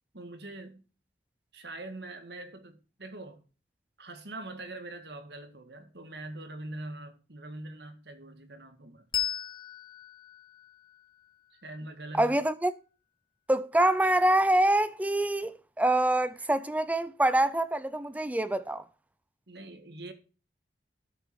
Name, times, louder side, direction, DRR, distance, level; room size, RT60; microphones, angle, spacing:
voice 1, 0.1-0.8 1.5-3.4 4.0-9.1 11.5-12.4 19.5-20.1, right 2 dB, 70° right, 1.9 m, -43 dB
Bell, 9.1-12.2, left 10 dB, 25° left, 1.1 m, -38 dB
voice 2, 12.1-12.7 13.5-18.8, right 1 dB, 10° right, 0.5 m, -25 dB
13.0 x 6.7 x 4.7 m
head